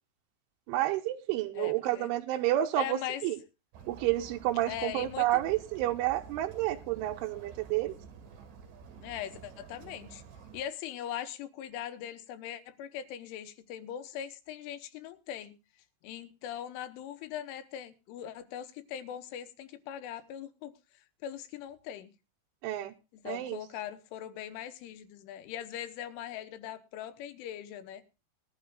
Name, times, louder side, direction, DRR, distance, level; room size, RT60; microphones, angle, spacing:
voice 1, 0.7-3.4 3.9-7.9 22.6-22.9 23.3-23.6, right 14 dB, 80° right, 3 dB, 3.0 m, -30 dB
voice 2, 1.5-2.1 2.8-3.2 4.7-5.4 9.0-10.2 10.5-15.5 16.0-22.1 23.1-28.0, left 10 dB, 80° left, 10 dB, 3.2 m, -40 dB
sound 1, 3.7-10.6, right 6 dB, 55° right, 2.7 m, -50 dB
20.5 x 12.0 x 2.4 m, 0.29 s
omnidirectional pair, 6.0 m